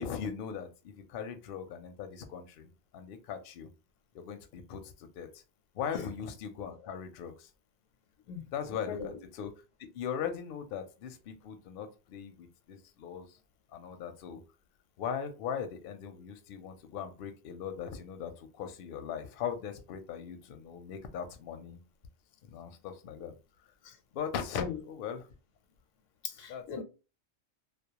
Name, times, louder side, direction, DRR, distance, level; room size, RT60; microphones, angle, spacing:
voice 1, 0.0-3.7 4.1-5.3 5.7-7.5 8.5-9.5 9.9-13.3 13.7-14.4 15.0-21.8 22.5-23.3 24.1-25.3 26.5-26.8, left 7 dB, 60° left, 0.6 m, -39 dB
voice 2, 26.2-26.8, left 6 dB, 85° left, 1.0 m, -38 dB
2.3 x 2.0 x 2.8 m
omnidirectional pair, 1.3 m